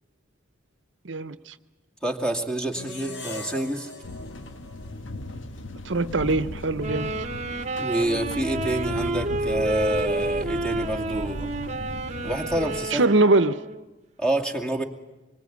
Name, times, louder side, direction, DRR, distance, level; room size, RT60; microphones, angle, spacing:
voice 1, 1.0-1.5 5.8-7.1 12.9-13.6, right 2 dB, 70° right, 13 dB, 0.9 m, -22 dB
voice 2, 2.0-3.9 7.8-11.5 12.2-13.0 14.2-14.8, right 1 dB, 5° left, 4 dB, 2.4 m, -27 dB
sound 1, 2.7-5.9, left 2 dB, 65° left, 2.8 m, -41 dB
sound 2, 4.0-12.8, left 1 dB, 90° left, 1.4 m, -36 dB
sound 3, 6.8-13.9, right 2 dB, 35° right, 1.2 m, -30 dB
25.5 x 24.5 x 9.3 m, 1.1 s
head